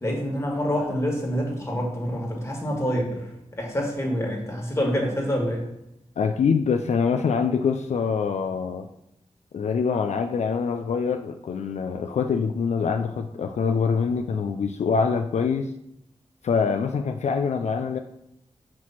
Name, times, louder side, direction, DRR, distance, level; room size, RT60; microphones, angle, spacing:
voice 1, 0.0-5.7, equal, 25° left, -2 dB, 1.8 m, -27 dB
voice 2, 6.2-8.9 9.5-15.7 16.4-18.0, left 5 dB, 70° left, 5 dB, 0.4 m, -24 dB
6.0 x 3.1 x 5.6 m, 0.80 s
wide cardioid pair, 80°, 12 cm